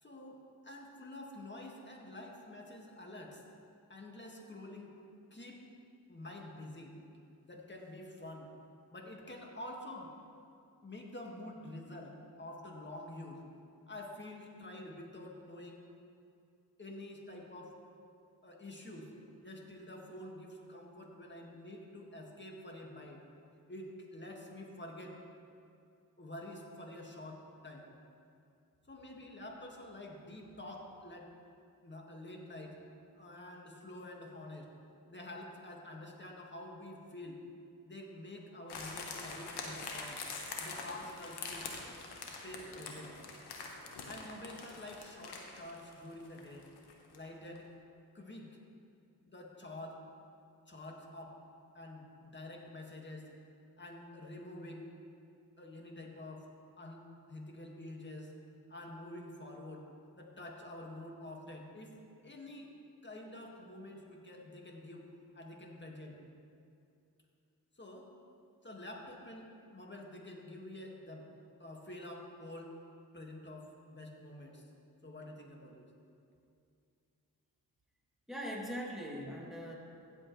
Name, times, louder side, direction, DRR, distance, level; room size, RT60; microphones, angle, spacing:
voice 1, 0.0-3.4 3.9-5.0 5.3-5.6 6.1-7.0 7.5-8.5 8.9-10.1 10.8-13.4 13.9-15.9 16.8-17.7 18.4-19.1 19.4-23.2 23.7-25.2 26.2-27.9 28.9-31.3 31.8-32.8 33.2-34.7 35.1-37.4 37.8-40.2 40.6-41.7 42.2-43.2 44.1-46.7 47.1-47.7 48.1-48.5 49.2-50.0 50.7-51.4 51.7-53.3 53.8-54.9 55.6-56.5 56.8-57.0 57.3-58.3 58.7-59.9 60.2-61.9 62.2-62.7 63.0-65.1 65.3-66.2 67.8-68.1 68.6-71.3 71.6-72.7 73.1-74.6 75.0-75.9, left 1 dB, 30° left, 0 dB, 2.0 m, -48 dB
sound 1, 38.7-47.3 47.6-47.7, left 4 dB, 85° left, 1.2 m, -44 dB
voice 2, 78.3-79.7, equal, ahead, -4 dB, 2.8 m, -41 dB
15.5 x 7.8 x 3.3 m, 2.5 s
cardioid pair, 50°, 39 cm